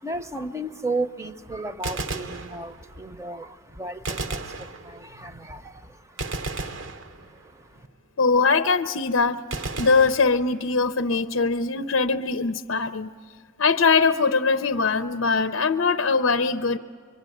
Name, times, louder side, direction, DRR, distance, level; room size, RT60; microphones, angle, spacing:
voice 1, 0.0-7.9, right 2 dB, 15° right, 10 dB, 0.8 m, -35 dB
Gunshot gunfire, 1.7-3.1 4.0-5.3 6.2-7.6 9.5-10.8, right 3 dB, 65° right, 1.0 m, -34 dB
voice 2, 8.2-9.4 9.8-13.1 13.6-16.8, left 4 dB, 75° left, 11 dB, 0.6 m, -21 dB
25.5 x 23.5 x 9.2 m, 2.1 s
head